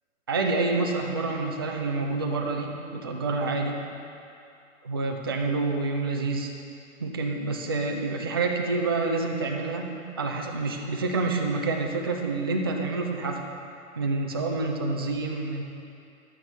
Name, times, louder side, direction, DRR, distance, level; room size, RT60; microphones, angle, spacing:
voice 1, 0.3-3.8 4.8-6.5 7.0-13.4 14.0-15.6, right 3 dB, 20° right, 1 dB, 0.3 m, -28 dB
12.0 x 8.5 x 3.9 m, 2.5 s
figure-of-eight pair, 120°, 41 cm